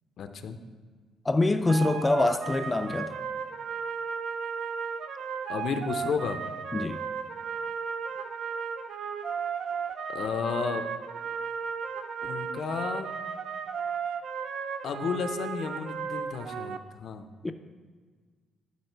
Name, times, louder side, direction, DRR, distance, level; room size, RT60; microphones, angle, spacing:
voice 1, 0.2-0.6 5.5-6.4 10.1-10.9 12.3-13.1 14.8-17.3, left 6 dB, 65° left, 8 dB, 0.6 m, -32 dB
voice 2, 1.3-3.1 6.7-7.0 17.4-17.5, left 2 dB, 20° left, 7 dB, 0.4 m, -25 dB
sound 1, 1.7-16.8, right 6 dB, 70° right, 0.4 m, -35 dB
11.0 x 4.9 x 4.5 m, 1.5 s
cardioid pair, 90°, 0 cm